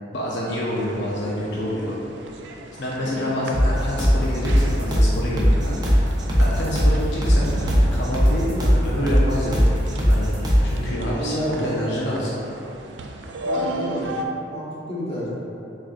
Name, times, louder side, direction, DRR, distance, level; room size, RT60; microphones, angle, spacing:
voice 1, 0.1-2.0 2.8-10.3 10.6-12.3, left 1 dB, 70° left, -5 dB, 0.6 m, -27 dB
sound 1, 0.7-14.2, right 1 dB, 70° right, 0.3 m, -36 dB
sound 2, 3.5-10.7, equal, 25° right, 0.6 m, -19 dB
voice 2, 11.1-11.6 13.4-14.1 14.5-15.3, equal, 35° left, -8 dB, 1.0 m, -29 dB
6.4 x 2.6 x 2.5 m, 2.8 s
head